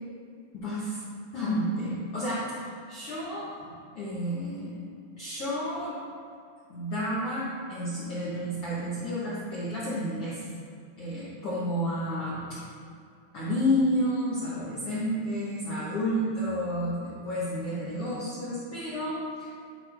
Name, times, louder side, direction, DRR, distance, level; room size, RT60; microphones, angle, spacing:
voice 1, 0.5-1.0 1.3-2.6 2.9-3.5 3.9-4.8 5.2-6.0 6.7-10.4 11.0-12.6 13.3-19.5, equal, 70° left, -9 dB, 1.3 m, -30 dB
10.5 x 4.4 x 3.4 m, 2.4 s
omnidirectional pair, 4.3 m